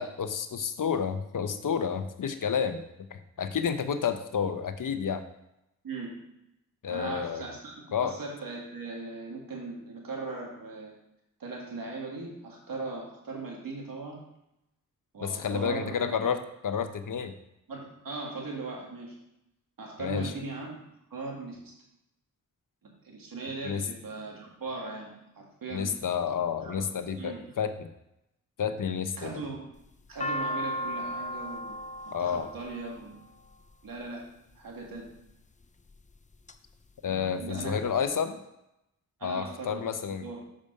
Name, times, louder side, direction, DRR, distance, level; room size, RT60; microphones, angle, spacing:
voice 1, 0.0-2.8 3.1-5.2 6.8-7.4 7.9-8.1 15.2-17.3 20.0-20.3 23.6-23.8 25.7-27.9 28.6-29.3 32.1-32.5 37.0-38.4 39.2-40.3, left 7 dB, 70° left, 10 dB, 0.8 m, -30 dB
voice 2, 5.8-6.2 6.9-10.9 11.4-14.2 15.1-16.2 17.7-19.1 19.8-20.8 21.1-21.6 23.0-26.0 26.6-27.5 29.2-29.7 30.1-31.8 32.1-33.2 33.8-34.2 34.6-35.1 37.4-37.8 39.2-40.4, right 3 dB, 80° right, -1 dB, 2.1 m, -39 dB
sound 1, 29.8-34.0 34.8-35.3 35.9-36.6 36.9-37.0 37.2-38.0, equal, 20° left, 0.5 m, -35 dB
7.0 x 5.1 x 5.3 m, 0.85 s
cardioid pair, 50°, 33 cm